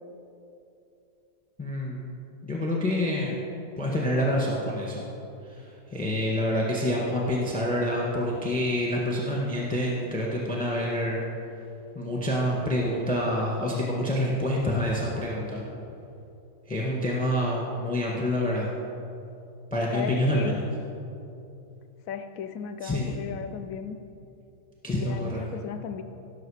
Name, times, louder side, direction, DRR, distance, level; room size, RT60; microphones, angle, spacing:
voice 1, 1.6-2.2 2.4-3.4 3.8-5.0 5.5-11.2 11.9-15.6 16.7-18.7 19.7-20.6 22.8-23.1 24.8-25.4, left 1 dB, 5° left, -3 dB, 1.3 m, -27 dB
voice 2, 19.9-20.6 22.1-24.0 25.0-26.0, left 7 dB, 70° left, 9 dB, 0.9 m, -35 dB
17.0 x 6.7 x 4.9 m, 2.8 s
omnidirectional pair, 1.8 m